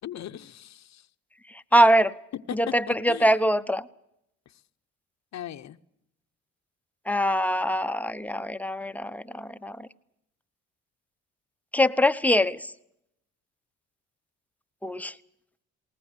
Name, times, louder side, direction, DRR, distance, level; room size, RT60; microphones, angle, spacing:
voice 1, 0.0-1.1 2.3-3.3 4.5-4.6 5.3-5.8, left 11 dB, 65° left, 0.9 m, -38 dB
voice 2, 1.5-2.1 2.5-3.9 7.1-9.9 11.7-12.7 14.8-15.1, equal, 5° left, 0.8 m, -23 dB
20.5 x 19.5 x 8.1 m
cardioid pair, 90°, 30 cm